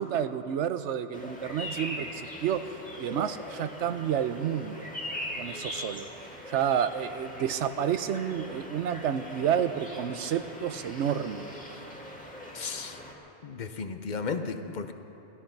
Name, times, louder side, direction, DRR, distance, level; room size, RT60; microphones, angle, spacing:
voice 1, 0.0-4.9 5.4-6.1 6.5-11.5, right 9 dB, 90° right, 11 dB, 1.0 m, -30 dB
sound 1, 1.1-13.1, left 1 dB, 5° left, 1.7 m, -41 dB
voice 2, 12.5-13.0 13.4-14.9, left 5 dB, 45° left, 8 dB, 0.8 m, -34 dB
16.5 x 13.5 x 5.8 m, 3.0 s
omnidirectional pair, 1.2 m